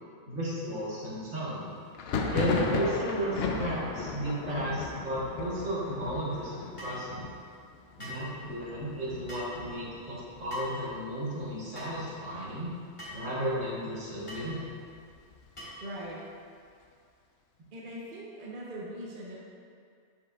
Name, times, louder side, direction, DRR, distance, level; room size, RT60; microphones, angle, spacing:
voice 1, 0.3-1.7 2.3-7.3 8.0-12.7 13.1-14.6, equal, 75° right, -7 dB, 1.8 m, -34 dB
Thunder, 1.9-11.5 11.7-12.4 12.7-13.7 14.1-15.8, left 4 dB, 65° left, 0.7 m, -36 dB
sound 1, 6.8-7.0 8.0-8.3 9.3-9.5 10.5-10.8 11.7-11.9 13.0-13.2 14.3-14.5 15.6-15.9, left 1 dB, 25° left, 1.5 m, -43 dB
voice 2, 15.8-16.2 17.7-19.3, right 1 dB, 45° right, -5 dB, 1.0 m, -41 dB
7.4 x 5.7 x 2.4 m, 2.3 s
omnidirectional pair, 1.3 m